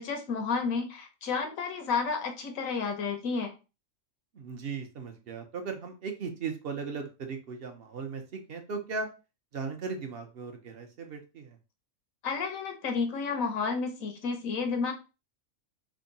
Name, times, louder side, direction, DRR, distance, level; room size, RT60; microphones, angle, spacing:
voice 1, 0.0-3.5 12.2-14.9, left 5 dB, 85° left, 5 dB, 1.2 m, -31 dB
voice 2, 4.3-9.1 9.5-11.6, right 5 dB, 55° right, 5 dB, 0.8 m, -37 dB
3.5 x 2.2 x 3.9 m, 0.31 s
omnidirectional pair, 1.4 m